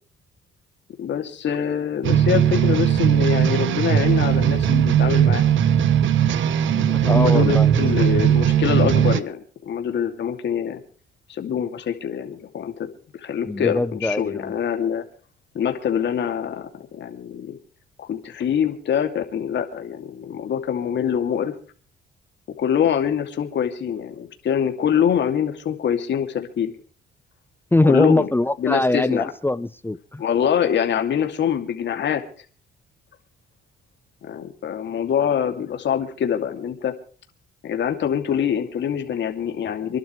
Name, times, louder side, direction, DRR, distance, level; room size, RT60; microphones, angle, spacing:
voice 1, 1.0-5.5 7.0-10.8 11.3-12.9 13.2-15.0 15.5-17.6 18.0-21.5 22.6-26.7 27.8-28.3 28.6-29.3 30.2-32.2 34.3-36.9 37.6-40.0, left 8 dB, 65° left, 5 dB, 2.7 m, -24 dB
sound 1, 2.0-9.2, right 9 dB, 75° right, 1.3 m, -18 dB
voice 2, 6.6-7.8 13.5-14.5 27.7-30.2, left 2 dB, 10° left, 15 dB, 0.7 m, -22 dB
26.5 x 12.0 x 3.3 m, 0.41 s
cardioid pair, 90°, 20 cm